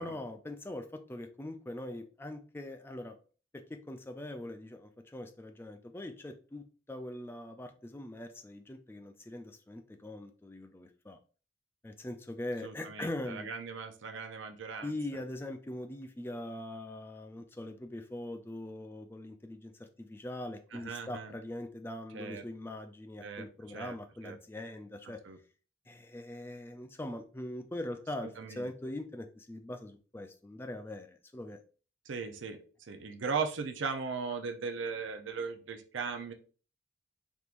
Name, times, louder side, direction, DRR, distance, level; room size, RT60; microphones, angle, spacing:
voice 1, 0.0-3.2 3.5-11.2 11.8-13.5 14.8-25.2 25.9-31.6, left 1 dB, 10° left, 6 dB, 0.3 m, -42 dB
voice 2, 12.6-14.9 20.7-21.3 22.1-22.4 23.2-23.9 24.2-24.4 25.2-25.4 28.4-28.7 32.1-32.6 32.9-36.3, right 5 dB, 70° right, 6 dB, 0.5 m, -38 dB
3.5 x 3.0 x 2.4 m, 0.37 s
head